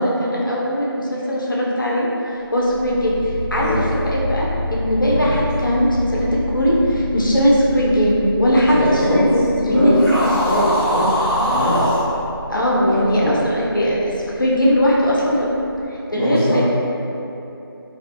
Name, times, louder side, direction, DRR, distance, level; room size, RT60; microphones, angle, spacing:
voice 1, 0.0-2.1 2.5-3.1 3.5-3.7 4.0-10.0 12.5-14.0 14.4-15.5 16.1-16.6, equal, 55° left, -5 dB, 0.5 m, -19 dB
sound 1, 2.4-15.9, left 1 dB, 55° right, 1.0 m, -30 dB
voice 2, 8.8-9.2 9.6-10.0 10.4-11.8 13.2-13.3 16.1-16.6, equal, 35° right, -14 dB, 1.2 m, -21 dB
sound 2, 9.9-12.0, equal, 15° right, 0.8 m, -21 dB
2.4 x 2.3 x 2.5 m, 2.9 s
figure-of-eight pair, 175°, 13 cm